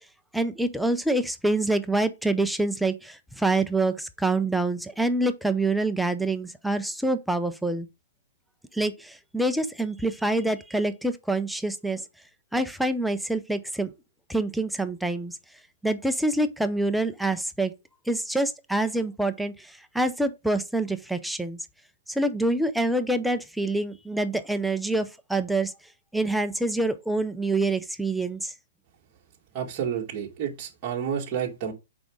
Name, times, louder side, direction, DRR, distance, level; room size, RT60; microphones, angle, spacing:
voice 1, 0.3-7.9 8.7-12.0 12.5-13.9 14.3-15.4 15.8-17.7 18.1-21.7 22.1-25.7 26.1-28.5, right 2 dB, ahead, 0.5 m, -26 dB
voice 2, 29.5-31.7, right 8 dB, 30° right, 1.7 m, -30 dB
6.2 x 4.8 x 3.6 m
hypercardioid pair, 150°, 0 cm